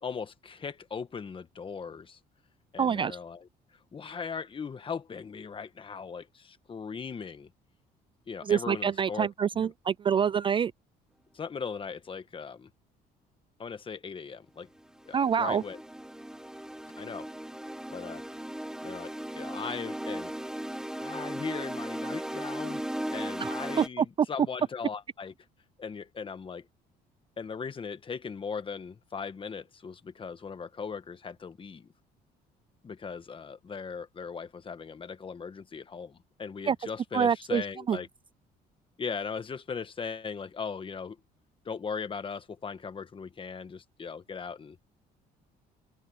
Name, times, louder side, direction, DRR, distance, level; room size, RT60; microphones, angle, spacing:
voice 1, 0.0-2.2 2.7-3.5 3.9-7.5 8.3-9.3 9.5-9.7 11.3-12.7 13.6-14.7 15.1-15.8 17.0-17.3 17.9-18.2 18.8-20.3 21.0-25.3 25.8-26.7 27.4-31.9 32.8-38.1 39.0-41.2 41.6-44.8, left 5 dB, 30° left, 1.5 m, -39 dB
voice 2, 2.8-3.2 8.4-10.7 15.1-15.6 23.4-24.3 36.7-36.8 37.1-38.0, right 7 dB, 30° right, 0.3 m, -27 dB
sound 1, 14.8-23.9, right 1 dB, 5° right, 1.4 m, -37 dB
open air
cardioid pair, 110°, 17 cm